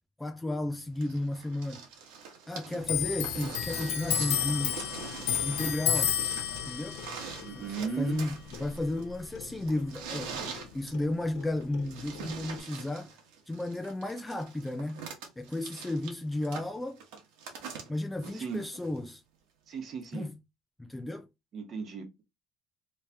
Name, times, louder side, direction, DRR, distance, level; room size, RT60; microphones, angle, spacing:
voice 1, 0.2-1.9 2.5-4.8 5.4-6.2 6.6-7.0 7.5-13.1 13.5-15.1 15.4-17.0 17.9-19.2 20.1-20.4 20.8-21.3, left 1 dB, 10° left, 0.4 m, -33 dB
sound 1, 1.0-19.1 20.1-20.2, right 6 dB, 90° right, 1.1 m, -44 dB
Clock, 2.8-9.9 10.1-11.5 11.7-12.6, left 10 dB, 80° left, 0.6 m, -32 dB
voice 2, 7.4-8.2 18.3-18.6 19.7-20.3 21.5-22.2, right 5 dB, 40° right, 1.1 m, -36 dB
3.2 x 2.8 x 3.4 m
cardioid pair, 130°, 0 cm